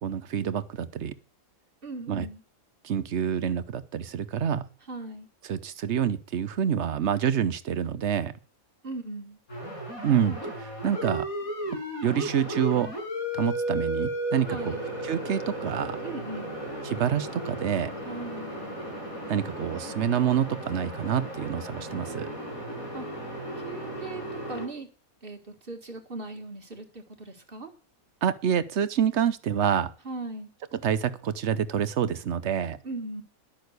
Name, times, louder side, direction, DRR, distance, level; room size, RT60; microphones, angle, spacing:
voice 1, 0.0-1.1 2.1-2.3 2.8-4.6 5.5-8.3 10.0-11.3 11.7-12.9 13.3-14.7 15.0-16.0 16.8-17.9 19.3-22.3 28.2-29.9 30.8-32.8, right 8 dB, 60° right, 14 dB, 1.1 m, -27 dB
voice 2, 1.8-2.4 4.9-5.3 8.8-9.4 14.5-14.9 16.0-16.6 18.1-18.6 22.9-23.1 23.6-24.2 24.5-24.9 25.2-27.7 30.0-30.5 32.8-33.2, right 2 dB, 40° right, 4 dB, 2.1 m, -38 dB
sound 1, 9.5-24.7, right 1 dB, 80° left, 7.3 m, -35 dB
12.0 x 6.4 x 8.1 m, 0.36 s
omnidirectional pair, 1.5 m